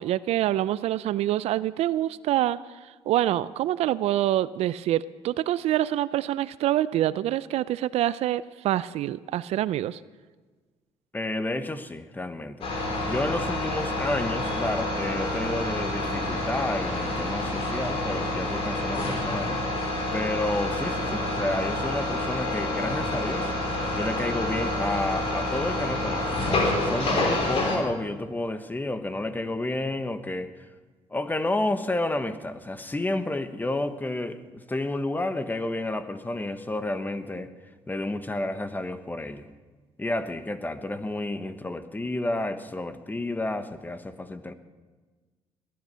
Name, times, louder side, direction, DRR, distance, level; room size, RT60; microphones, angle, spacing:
voice 1, 0.0-10.0, right 13 dB, 70° right, 17 dB, 0.4 m, -26 dB
voice 2, 11.1-12.7 13.1-19.6 20.1-23.5 24.0-30.5 31.1-37.5 37.9-39.5 40.0-44.5, left 2 dB, 15° left, 10 dB, 1.1 m, -30 dB
sound 1, 12.6-27.8, left 1 dB, 60° left, 3.8 m, -28 dB
19.0 x 11.0 x 5.6 m, 1.3 s
supercardioid pair, 80°, 11 cm